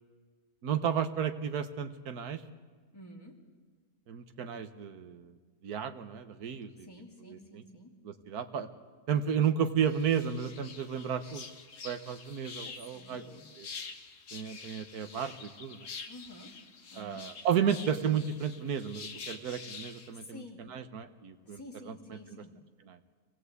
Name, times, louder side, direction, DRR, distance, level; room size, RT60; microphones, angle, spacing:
voice 1, 0.6-2.4 4.1-5.4 5.6-6.9 7.3-7.6 8.0-8.7 9.1-11.5 11.8-13.2 13.6-13.7 14.3-15.9 17.0-20.4 20.7-21.6 21.9-22.0 22.9-23.0, right 8 dB, 75° right, 9 dB, 1.6 m, -33 dB
voice 2, 2.9-3.4 6.8-7.9 12.6-13.4 16.1-16.5 16.9-17.2 20.2-20.6 21.5-22.5, left 1 dB, 15° left, -1 dB, 2.7 m, -50 dB
sound 1, 9.8-20.1, left 5 dB, 80° left, 1.7 m, -47 dB
24.0 x 17.0 x 8.2 m, 1.5 s
omnidirectional pair, 1.7 m